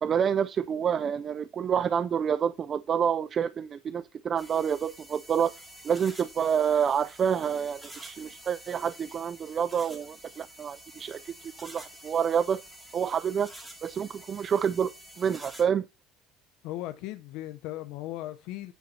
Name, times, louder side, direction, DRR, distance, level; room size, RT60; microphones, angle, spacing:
voice 1, 0.0-5.5 5.8-12.6 12.9-13.5 13.8-14.9 15.2-15.8, right 7 dB, 30° right, 0.3 m, -28 dB
sound 1, 4.4-15.6, right 1 dB, 10° right, 2.2 m, -49 dB
voice 2, 16.6-18.7, left 15 dB, 70° left, 0.6 m, -37 dB
9.3 x 4.2 x 5.5 m
cardioid pair, 140°, 0 cm